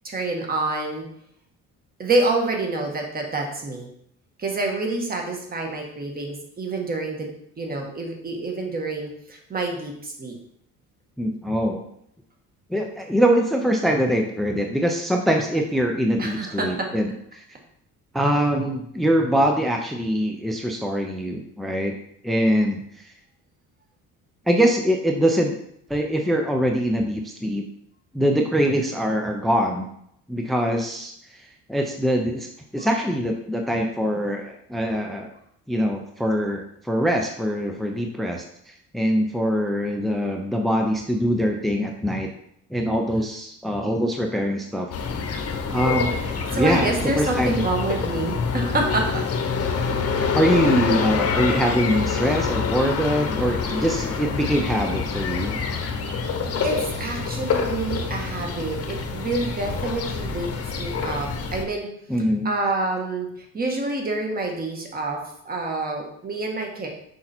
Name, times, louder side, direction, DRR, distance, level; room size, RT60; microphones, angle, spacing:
voice 1, 0.0-1.1 2.0-3.9 4.4-10.4 16.2-16.9 32.8-32.9 46.2-49.2 53.6-53.7 56.1-56.3 56.6-60.5 60.8-61.9 62.4-65.2 65.4-66.9, right 2 dB, 30° right, 2 dB, 1.6 m, -27 dB
voice 2, 11.2-11.8 12.7-17.6 18.1-21.9 22.2-23.1 24.5-25.6 25.9-27.6 28.1-29.9 30.3-35.3 35.7-42.3 42.7-44.9 45.7-46.2 46.5-47.6 50.3-55.8 62.1-62.5, equal, ahead, 2 dB, 0.6 m, -23 dB
sound 1, 44.9-61.6, left 5 dB, 50° left, 1.1 m, -26 dB
6.4 x 5.6 x 4.4 m, 0.72 s
cardioid pair, 130°, 32 cm